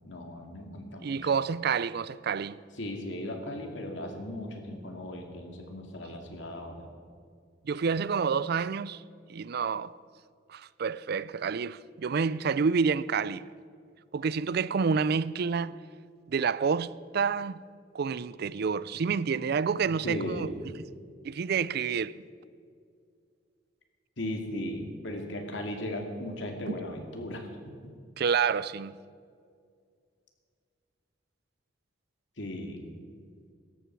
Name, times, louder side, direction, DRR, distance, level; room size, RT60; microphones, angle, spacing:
voice 1, 0.0-1.3 2.8-6.9 19.8-20.6 24.2-27.5 32.4-32.9, left 1 dB, 70° left, 2.3 m, -37 dB
voice 2, 1.0-2.6 7.6-9.0 9.3-9.9 10.5-13.4 14.1-15.8 16.3-17.6 17.9-20.5 21.2-22.2 26.7-26.8 28.2-29.0, right 5 dB, 55° right, 0.4 m, -28 dB
17.5 x 13.5 x 4.6 m
head